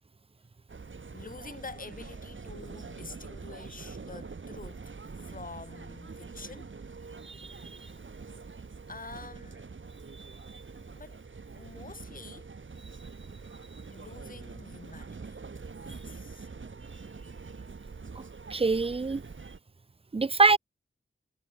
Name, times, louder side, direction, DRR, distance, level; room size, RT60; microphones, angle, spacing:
sound 1, 0.7-19.6, right 4 dB, 70° right, 5.5 m, -45 dB
voice 1, 1.1-4.9 5.2-6.7 8.9-9.7 11.0-11.2 11.5-12.5 13.9-15.4 15.8-16.5, left 4 dB, 40° left, 1.7 m, -47 dB
voice 2, 18.5-19.2 20.1-20.6, right 4 dB, 25° right, 0.6 m, -24 dB
wide cardioid pair, 70°, 21 cm